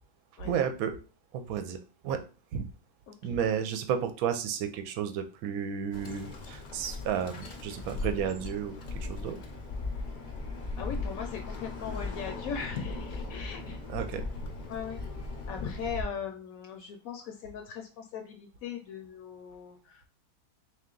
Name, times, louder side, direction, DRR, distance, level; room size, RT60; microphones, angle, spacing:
voice 1, 0.4-1.0 1.3-2.2 2.5-2.7 3.2-9.4 13.9-14.3, right 8 dB, 75° right, 8 dB, 1.0 m, -32 dB
Bird, 5.9-16.0, left 3 dB, 50° left, 0.5 m, -38 dB
voice 2, 10.8-13.8 14.7-15.0 15.5-20.1, left 7 dB, 70° left, 4 dB, 1.0 m, -39 dB
3.5 x 2.8 x 3.8 m, 0.35 s
omnidirectional pair, 1.6 m